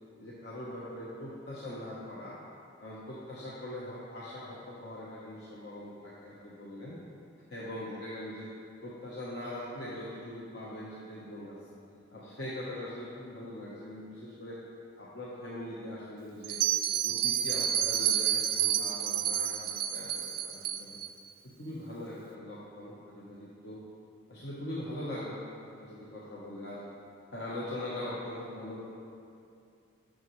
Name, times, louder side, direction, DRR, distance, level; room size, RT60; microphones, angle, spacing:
voice 1, 0.2-2.4 2.8-7.0 7.5-8.5 8.8-11.6 12.1-14.6 15.0-16.6 17.0-21.0 21.4-23.8 24.3-25.4 25.8-26.8 27.3-28.8, left 1 dB, 55° left, -7 dB, 0.9 m, -41 dB
Bell, 16.4-21.1, right 10 dB, 45° right, 0.4 m, -29 dB
8.9 x 6.1 x 3.1 m, 2.5 s
head